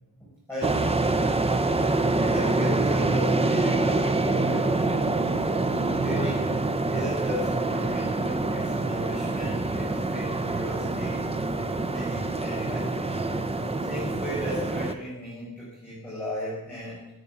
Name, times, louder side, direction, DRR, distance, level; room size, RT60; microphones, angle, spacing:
voice 1, 0.2-1.1 2.1-4.9 5.9-13.3 13.8-17.1, equal, 5° left, -8 dB, 5.8 m, -36 dB
sound 1, 0.6-14.9, right 2 dB, 15° right, 1.0 m, -26 dB
19.5 x 9.1 x 7.2 m, 0.91 s
wide cardioid pair, 165°, 35 cm